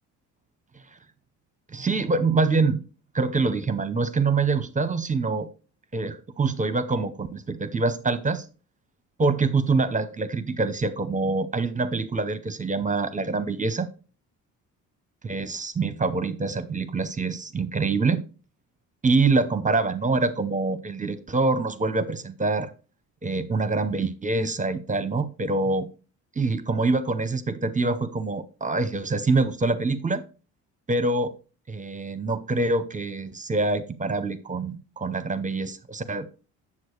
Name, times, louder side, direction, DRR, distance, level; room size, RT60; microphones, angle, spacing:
voice 1, 1.7-2.8 3.1-5.5 5.9-8.5 9.2-13.9 15.2-18.2 19.0-22.7 23.2-25.9 26.4-30.2 30.9-31.3 31.7-36.3, right 3 dB, 20° right, 13 dB, 0.7 m, -25 dB
7.4 x 6.3 x 3.1 m, 0.35 s
supercardioid pair, 70°, 38 cm